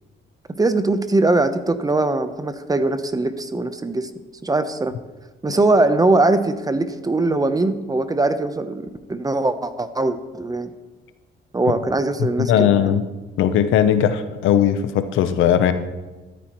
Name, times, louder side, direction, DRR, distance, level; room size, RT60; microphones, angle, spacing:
voice 1, 0.6-4.1 4.4-4.9 5.4-10.7 11.5-13.0, right 2 dB, 20° right, 11 dB, 0.8 m, -21 dB
voice 2, 12.2-13.0 13.4-15.7, left 9 dB, 85° left, 10 dB, 0.8 m, -18 dB
13.5 x 13.5 x 3.1 m, 1.2 s
cardioid pair, 90°, 20 cm